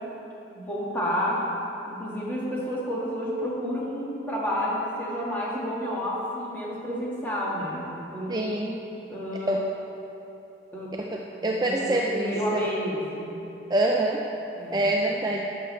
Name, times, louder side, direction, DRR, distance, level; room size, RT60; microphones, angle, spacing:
voice 1, 0.5-1.4 1.9-8.6 9.1-9.5 10.7-10.9 11.4-13.4 14.6-14.9, equal, 10° left, -7 dB, 1.5 m, -30 dB
voice 2, 8.3-8.8 9.5-9.6 11.1-12.7 13.7-14.2 14.7-15.4, right 1 dB, 20° right, -1 dB, 0.3 m, -25 dB
11.0 x 6.9 x 3.1 m, 3.0 s
head